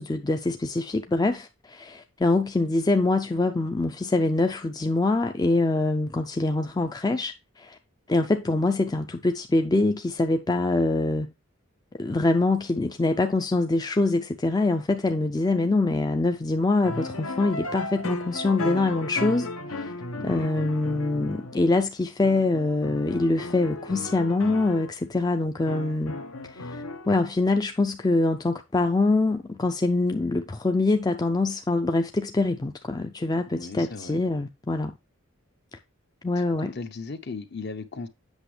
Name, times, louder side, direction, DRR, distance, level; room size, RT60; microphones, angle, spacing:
voice 1, 0.0-7.8 8.1-11.3 12.0-19.9 20.2-26.2 26.5-35.0 36.2-36.7, left 2 dB, 20° left, 0.4 m, -24 dB
sound 1, 16.8-21.9 22.2-24.9 25.7-27.2, left 2 dB, 75° left, 1.1 m, -35 dB
voice 2, 20.2-20.5 33.5-34.2 36.4-38.1, left 4 dB, 50° left, 0.8 m, -37 dB
8.1 x 6.2 x 3.2 m
head